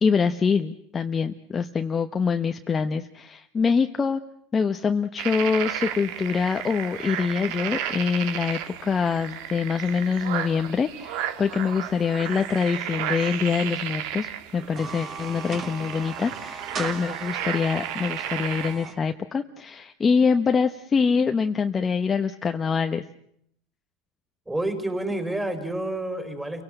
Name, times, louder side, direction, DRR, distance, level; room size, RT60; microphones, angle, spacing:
voice 1, 0.0-4.2 4.5-23.0, left 5 dB, 20° left, 7 dB, 1.0 m, -25 dB
sound 1, 5.2-18.8, right 10 dB, 65° right, 2.0 m, -33 dB
sound 2, 14.6-18.9, right 5 dB, 30° right, 3.3 m, -37 dB
voice 2, 24.5-26.6, right 1 dB, 10° right, 7 dB, 4.5 m, -29 dB
30.0 x 18.0 x 7.9 m, 0.71 s
supercardioid pair, 130°, 0 cm